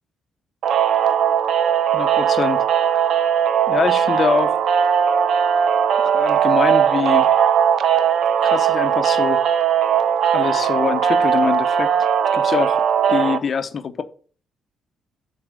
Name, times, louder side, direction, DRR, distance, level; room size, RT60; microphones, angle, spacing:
sound 1, 0.6-13.4, right 8 dB, 70° right, 0.7 m, -18 dB
voice 1, 1.9-2.6 3.7-4.6 6.0-7.3 8.4-9.4 10.3-11.9 12.3-12.8 13.1-14.0, left 6 dB, 50° left, 0.8 m, -24 dB
7.7 x 4.2 x 5.1 m
cardioid pair, 90°, 0 cm